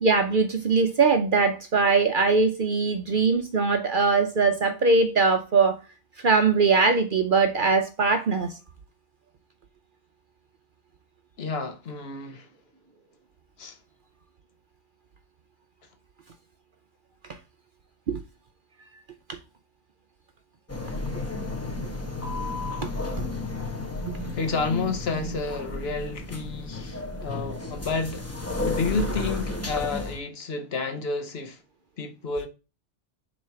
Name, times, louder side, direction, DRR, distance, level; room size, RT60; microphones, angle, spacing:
voice 1, 0.0-5.8 6.2-8.6 18.1-18.2 19.3-19.4 22.8-22.9, right 4 dB, 50° right, 0.7 m, -21 dB
voice 2, 11.4-12.5 13.6-13.8 24.3-31.6 32.0-32.5, left 4 dB, 55° left, 1.1 m, -30 dB
sound 1, 20.7-30.2, left 2 dB, 15° left, 0.9 m, -32 dB
7.5 x 3.1 x 5.7 m
omnidirectional pair, 1.3 m